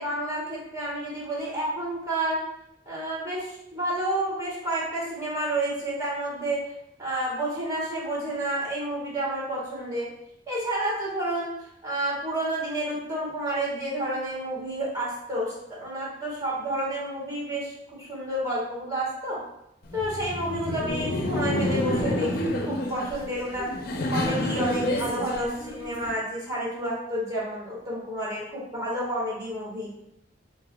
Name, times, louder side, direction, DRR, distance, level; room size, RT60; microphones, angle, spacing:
voice 1, 0.0-2.4 2.8-6.7 7.0-10.1 10.5-19.4 19.9-23.7 24.1-29.9, right 1 dB, 20° right, -6 dB, 1.4 m, -30 dB
Laughter, 19.8-26.1, left 1 dB, 55° left, 0.5 m, -29 dB
6.0 x 2.6 x 2.2 m, 0.80 s
head